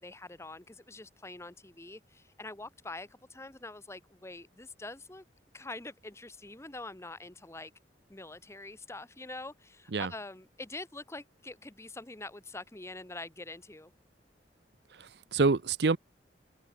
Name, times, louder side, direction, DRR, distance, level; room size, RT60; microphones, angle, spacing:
voice 1, 0.0-5.2 5.5-7.7 8.1-13.9, left 2 dB, 15° left, 1.1 m, -45 dB
voice 2, 14.9-16.0, right 4 dB, 65° right, 0.7 m, -27 dB
head